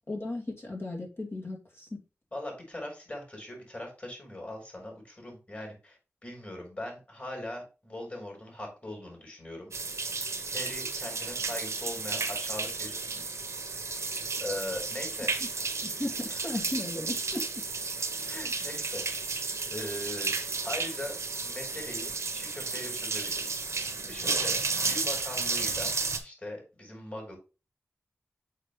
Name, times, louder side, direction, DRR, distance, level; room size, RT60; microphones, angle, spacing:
voice 1, 0.1-2.0 16.0-17.4, left 2 dB, 55° left, -1 dB, 2.4 m, -35 dB
voice 2, 2.3-6.0 6.2-9.7 10.5-13.2 14.4-15.3 16.3-16.4 18.3-19.3 19.7-20.3 20.6-21.1 21.4-23.6 24.0-25.9 26.2-27.4, left 1 dB, 35° left, 0 dB, 4.2 m, -40 dB
sound 1, 9.7-26.2, right 4 dB, 80° right, 1.0 m, -33 dB
6.5 x 5.5 x 3.2 m, 0.31 s
wide cardioid pair, 80°, 5 cm